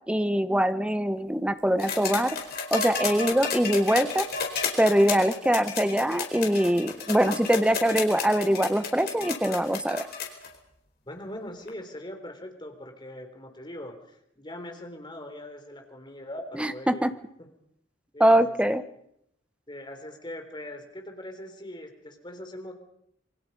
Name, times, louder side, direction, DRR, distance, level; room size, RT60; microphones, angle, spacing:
voice 1, 0.1-2.4 2.7-4.3 4.8-10.0 16.6-17.1 18.2-18.8, equal, 5° right, 10 dB, 1.1 m, -23 dB
sound 1, 1.8-10.5 11.7-11.8, left 5 dB, 55° left, 4.6 m, -32 dB
voice 2, 11.1-17.1 18.1-18.8 19.7-22.7, left 1 dB, 25° left, 5 dB, 3.5 m, -41 dB
27.0 x 23.5 x 5.4 m, 0.74 s
head